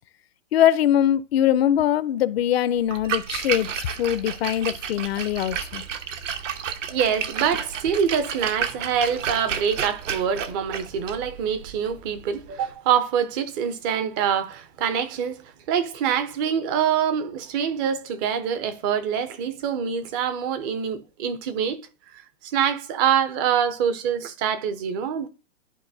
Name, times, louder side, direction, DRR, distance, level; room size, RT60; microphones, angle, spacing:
voice 1, 0.5-5.8, left 11 dB, 55° left, 0.6 m, -22 dB
Splash splatter, 2.8-12.7, right 8 dB, 85° right, 1.0 m, -32 dB
voice 2, 6.9-21.8 22.4-25.3, right 8 dB, 20° right, 0.4 m, -25 dB
12.0 x 4.0 x 2.6 m
hypercardioid pair, 140°, 37 cm